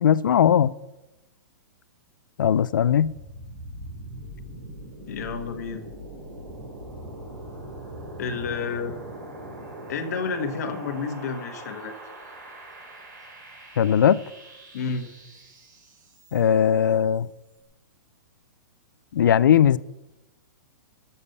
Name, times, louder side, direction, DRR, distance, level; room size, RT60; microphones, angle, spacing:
voice 1, 0.0-0.7 2.4-3.1 13.8-14.2 16.3-17.3 19.1-19.8, left 9 dB, 90° left, 0.4 m, -19 dB
sound 1, 2.9-16.7, right 1 dB, 65° right, 3.6 m, -41 dB
voice 2, 5.1-5.8 8.2-9.0 9.9-11.9 14.7-15.1, left 5 dB, 55° left, 1.4 m, -30 dB
7.1 x 6.8 x 6.6 m
hypercardioid pair, 165°, 10 cm